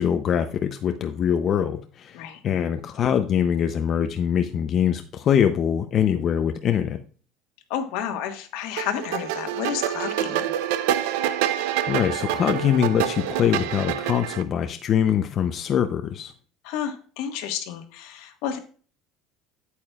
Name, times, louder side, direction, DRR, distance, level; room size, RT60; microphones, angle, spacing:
voice 1, 0.0-7.0 11.9-16.3, left 9 dB, 40° left, 7 dB, 0.6 m, -23 dB
voice 2, 7.7-10.5 16.6-18.6, left 9 dB, 75° left, 6 dB, 1.5 m, -31 dB
sound 1, 8.8-14.4, right 11 dB, 85° right, 0.6 m, -27 dB
8.7 x 8.5 x 2.4 m, 0.41 s
cardioid pair, 140°, 0 cm